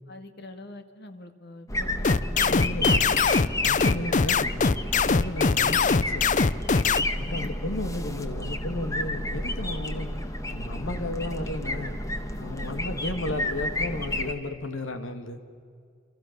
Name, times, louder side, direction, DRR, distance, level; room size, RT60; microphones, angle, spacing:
voice 1, 0.1-2.7 7.3-7.7 12.7-13.0, left 1 dB, 55° left, 8 dB, 2.1 m, -44 dB
sound 1, 1.7-14.3, left 1 dB, 15° left, 1.7 m, -31 dB
sound 2, 2.0-7.0, left 5 dB, 40° left, 0.6 m, -22 dB
voice 2, 2.5-3.1 3.6-4.6 4.9-6.3 7.1-10.1 10.5-12.0 12.4-15.4, left 2 dB, 80° left, 9 dB, 2.1 m, -34 dB
29.0 x 26.0 x 6.8 m, 2.3 s
head